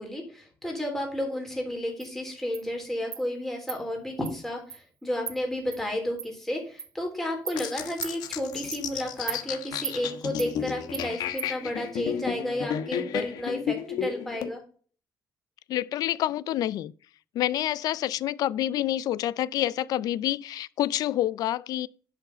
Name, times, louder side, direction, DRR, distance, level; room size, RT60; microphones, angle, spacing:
voice 1, 0.0-14.6, left 1 dB, 5° left, 3.4 m, -32 dB
Insect, 2.0-2.1 2.5-2.6 3.1-3.2 3.7-3.8 4.2-4.3 4.7-4.8 5.3-5.4 5.7-5.8 6.2-6.3 6.8-6.9 7.5-7.6 8.0-8.2 8.7-8.8 9.3-9.4 9.8-10.0 10.4-10.5 10.9-11.1 11.4-11.5, right 7 dB, 40° right, 1.0 m, -36 dB
sound 1, 7.6-14.5, left 9 dB, 85° left, 1.3 m, -33 dB
voice 2, 15.7-16.9 17.3-21.9, left 13 dB, 70° left, 0.5 m, -27 dB
11.0 x 5.8 x 5.7 m
cardioid pair, 160°, 7 cm